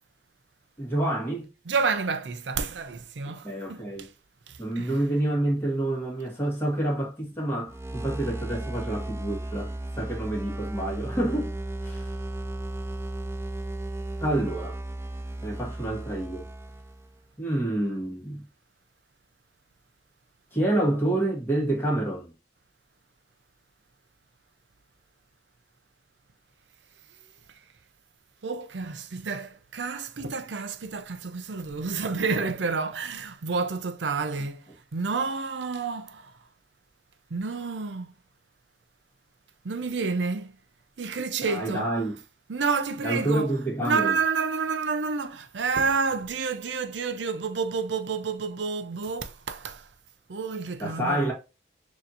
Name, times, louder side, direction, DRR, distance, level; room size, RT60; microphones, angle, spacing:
voice 1, 0.8-1.5 3.4-4.1 4.6-11.5 11.8-12.1 14.2-14.8 15.4-16.5 17.4-18.4 20.5-22.3 41.4-42.1 43.0-44.1 50.8-51.3, right 1 dB, 10° left, 1.8 m, -28 dB
voice 2, 1.7-3.9 4.8-4.9 28.4-34.6 34.9-36.3 37.3-38.1 39.6-40.5 41.0-41.9 42.5-43.6 43.8-49.8 50.3-51.3, right 4 dB, 85° right, 0.6 m, -29 dB
sound 1, 7.7-17.2, right 1 dB, 15° right, 0.3 m, -35 dB
6.6 x 2.9 x 2.6 m
head